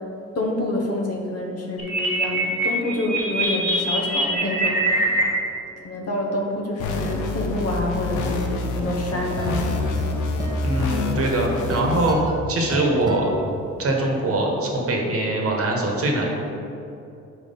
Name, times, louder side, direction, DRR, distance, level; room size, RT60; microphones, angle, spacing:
voice 1, 0.3-5.2 5.8-10.0, left 1 dB, 55° left, 0 dB, 1.0 m, -27 dB
sound 1, 1.8-5.2, right 2 dB, 25° left, 1.4 m, -23 dB
sound 2, 6.8-12.1, left 2 dB, 80° left, 0.7 m, -26 dB
sound 3, 9.3-14.2, right 1 dB, 15° right, 0.7 m, -34 dB
voice 2, 10.6-12.2 12.5-13.3 13.8-16.3, right 2 dB, 50° right, 0 dB, 1.1 m, -22 dB
4.7 x 4.1 x 5.3 m, 2.7 s
cardioid pair, 90°, 30 cm